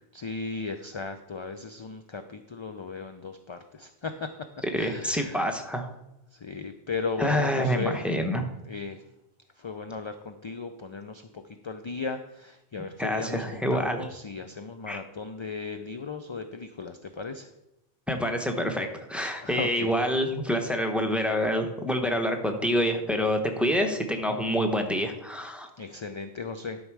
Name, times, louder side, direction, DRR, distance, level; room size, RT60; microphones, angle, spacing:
voice 1, 0.1-4.3 4.8-5.5 6.3-8.1 8.6-9.0 9.6-17.5 19.4-19.9 25.8-26.8, left 4 dB, 40° left, 8 dB, 0.4 m, -36 dB
voice 2, 4.7-5.9 7.2-8.5 13.0-14.0 14.9-15.0 18.1-25.7, equal, ahead, 4 dB, 0.9 m, -27 dB
12.5 x 5.5 x 4.7 m, 0.87 s
omnidirectional pair, 1.1 m